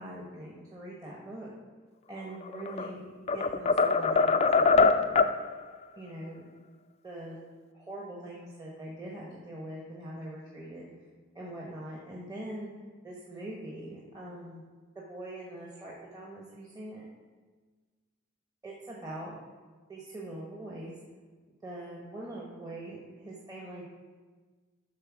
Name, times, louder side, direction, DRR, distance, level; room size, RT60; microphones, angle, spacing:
voice 1, 0.0-1.5 2.1-5.3 6.0-6.4 7.0-7.4 7.7-10.9 11.3-12.7 13.0-14.6 14.9-17.0 18.6-19.4 19.9-20.9 21.6-23.8, right 1 dB, 20° right, -4 dB, 1.0 m, -42 dB
sound 1, 2.4-2.9 3.3-5.4, left 4 dB, 30° left, 0.3 m, -23 dB
11.0 x 4.0 x 6.0 m, 1.4 s
head